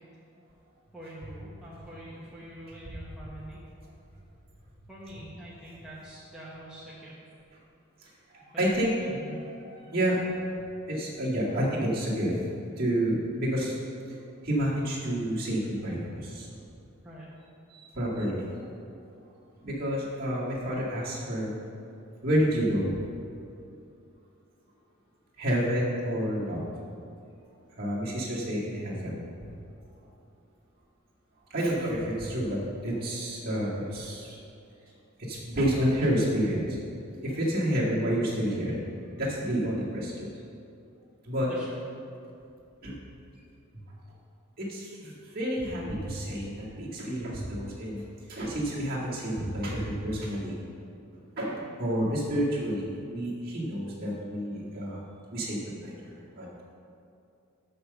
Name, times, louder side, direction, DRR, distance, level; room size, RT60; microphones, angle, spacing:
voice 1, 0.9-3.6 4.9-7.1 8.5-8.6 17.0-17.3 41.4-41.8 51.6-51.8, right 1 dB, 5° right, -9 dB, 1.1 m, -45 dB
voice 2, 8.0-10.2 10.9-12.4 12.8-13.7 14.1-14.2 14.4-16.5 17.7-18.5 19.6-21.5 22.2-23.1 25.4-26.6 27.8-29.1 31.5-34.4 35.2-36.7 37.2-38.8 39.2-40.3 41.2-41.5 42.8-43.0 44.6-50.6 51.3-55.0 55.3-56.5, equal, 45° right, -7 dB, 2.2 m, -29 dB
6.7 x 6.6 x 6.7 m, 2.6 s
head